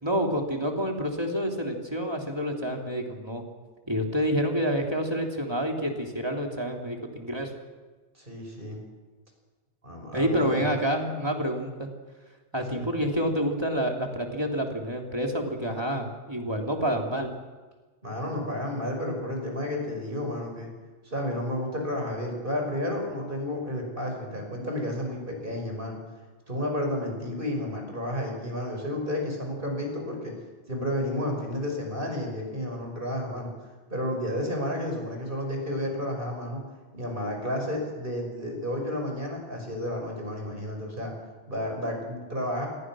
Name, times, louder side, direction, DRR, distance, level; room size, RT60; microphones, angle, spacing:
voice 1, 0.0-3.4 3.9-7.5 10.1-11.9 12.5-17.3, equal, 20° right, 1 dB, 3.2 m, -28 dB
voice 2, 8.1-8.8 9.8-10.7 12.7-12.9 18.0-20.7 21.0-26.0 26.5-30.3 30.7-36.6 36.9-41.1 41.5-42.7, left 1 dB, 45° right, 2 dB, 6.4 m, -31 dB
27.5 x 22.0 x 6.4 m, 1.3 s
omnidirectional pair, 1.2 m